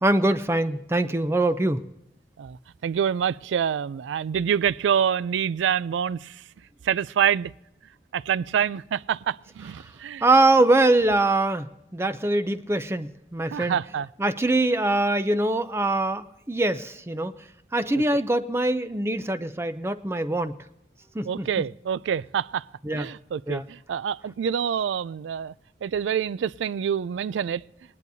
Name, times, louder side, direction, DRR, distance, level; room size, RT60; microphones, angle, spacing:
voice 1, 0.0-1.8 10.2-11.7 11.9-13.8 14.2-17.3 17.7-20.6 21.1-21.5 22.8-23.1 23.5-23.7, right 2 dB, 15° right, 0.4 m, -23 dB
voice 2, 2.8-6.4 6.8-7.5 8.1-10.2 13.5-14.1 18.1-18.2 21.2-22.7 22.9-25.5 25.8-27.6, right 8 dB, 90° right, 0.3 m, -26 dB
20.5 x 10.5 x 2.7 m
head